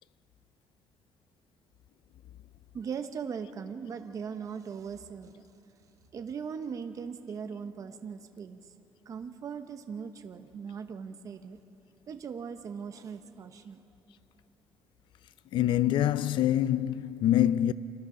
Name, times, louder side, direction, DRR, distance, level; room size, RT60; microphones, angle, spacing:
voice 1, 2.7-5.3 6.1-8.6 9.1-11.6 12.1-13.8, right 6 dB, 40° right, 0.8 m, -39 dB
voice 2, 15.5-17.7, left 12 dB, 65° left, 0.5 m, -25 dB
29.5 x 25.5 x 3.8 m
cardioid pair, 140°, 9 cm